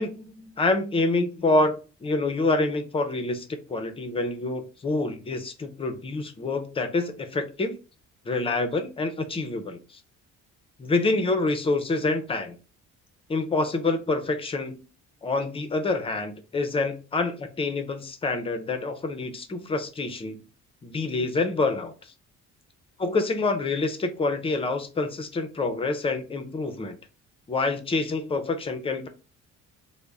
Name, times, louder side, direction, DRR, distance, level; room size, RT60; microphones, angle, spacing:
voice 1, 0.0-7.8 8.3-10.0 10.8-12.6 13.3-14.8 15.2-20.4 20.8-22.1 23.0-27.0 27.5-29.1, left 3 dB, 20° left, 8 dB, 0.4 m, -27 dB
3.4 x 2.0 x 3.8 m, 0.33 s
cardioid pair, 170°, 29 cm